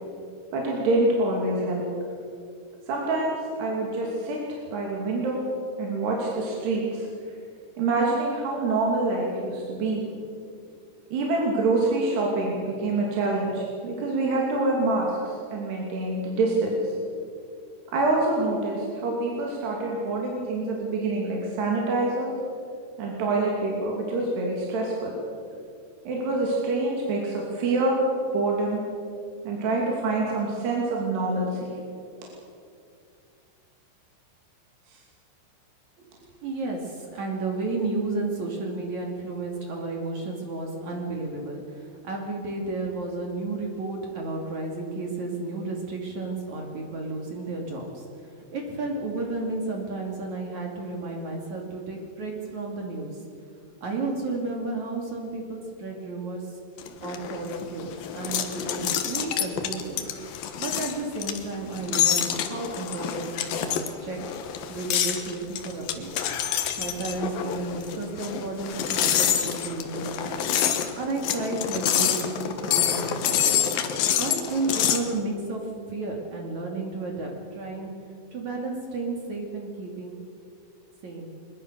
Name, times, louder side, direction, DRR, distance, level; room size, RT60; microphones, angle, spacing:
voice 1, 0.5-1.8 2.9-5.4 5.8-7.1 7.8-10.0 11.1-17.0 17.9-22.3 23.0-25.1 26.0-28.0 28.3-28.8 29.4-31.7 34.9-35.0, right 2 dB, 60° right, -2 dB, 4.6 m, -26 dB
voice 2, 36.4-48.1 48.5-53.1 53.8-56.4 57.0-60.0 60.6-64.2 64.7-66.1 66.8-70.5 70.9-73.6 74.2-75.6 75.9-77.9 78.3-80.2 81.0-81.4, right 3 dB, 45° right, 1 dB, 3.2 m, -32 dB
sound 1, 56.8-75.1, left 9 dB, 65° left, 2.4 m, -27 dB
22.5 x 21.5 x 6.7 m, 2.4 s
omnidirectional pair, 5.6 m